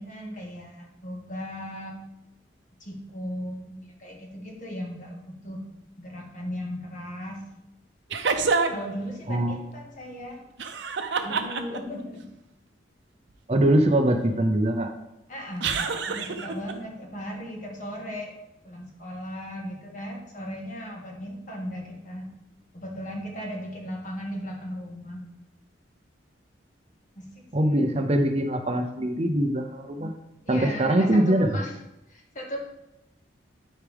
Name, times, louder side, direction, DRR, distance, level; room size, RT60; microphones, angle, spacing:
voice 1, 0.0-2.0 2.8-5.6 6.0-7.4 8.7-10.4 11.2-12.3 15.3-15.7 16.1-18.4 18.6-22.3 22.7-25.2 27.2-27.3 27.6-27.9 30.5-31.8 32.1-32.6, equal, 45° left, 0 dB, 1.8 m, -37 dB
sound 1, 8.1-8.9 10.6-12.0 15.6-16.7, right 4 dB, 70° right, 0.7 m, -27 dB
voice 2, 9.3-9.6 13.5-14.9 27.5-30.1 30.5-31.6, right 1 dB, 35° right, 5 dB, 0.6 m, -22 dB
12.0 x 4.7 x 3.5 m, 0.89 s
head